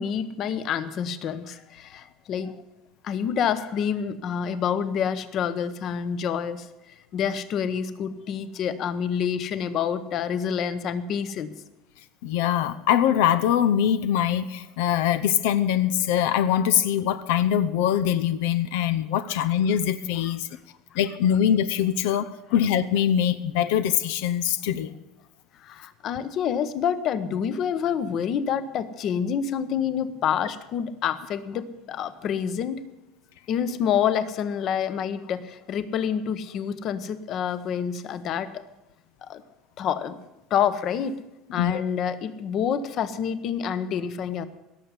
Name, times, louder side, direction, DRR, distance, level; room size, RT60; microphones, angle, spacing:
voice 1, 0.0-2.5 3.0-6.7 7.1-11.5 25.6-32.8 33.5-38.6 39.2-39.4 39.8-40.2 40.5-41.2 41.5-44.4, left 8 dB, 40° left, 13 dB, 1.0 m, -27 dB
voice 2, 12.2-20.5 20.9-24.9 41.5-41.8, left 9 dB, 80° left, 12 dB, 0.7 m, -23 dB
17.5 x 6.9 x 9.8 m, 0.94 s
cardioid pair, 150°, 0 cm